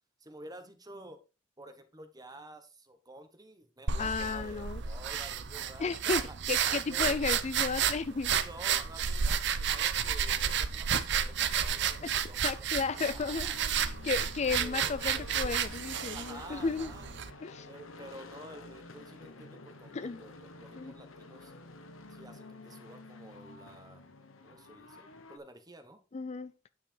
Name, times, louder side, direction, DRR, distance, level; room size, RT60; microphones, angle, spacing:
voice 1, 0.2-1.2 1.6-6.3 6.7-7.2 8.1-13.6 14.6-15.3 16.1-17.1 17.6-21.5 22.1-24.1 24.4-26.0, right 1 dB, 20° right, 1.3 m, -50 dB
sound 1, 3.9-17.3, right 8 dB, 60° right, 0.7 m, -31 dB
voice 2, 4.0-4.8 5.8-6.2 6.5-8.3 12.0-12.1 12.4-16.9 17.4-17.7 19.9-20.2 20.8-20.9 26.1-26.5, left 4 dB, 35° left, 0.4 m, -33 dB
sound 2, 12.9-25.4, left 3 dB, 85° left, 1.3 m, -50 dB
9.7 x 5.7 x 4.5 m
head